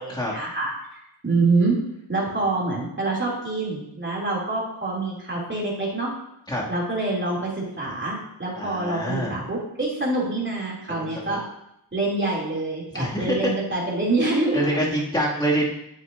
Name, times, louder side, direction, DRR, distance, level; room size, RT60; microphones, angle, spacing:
voice 1, 0.0-1.8 2.1-6.1 6.7-11.4 11.9-14.8, right 2 dB, 30° right, -4 dB, 2.8 m, -26 dB
voice 2, 8.5-9.4 10.9-11.3 12.9-13.5 14.5-15.6, equal, 10° left, -5 dB, 2.4 m, -26 dB
9.1 x 7.9 x 2.7 m, 0.81 s
wide cardioid pair, 75°, 41 cm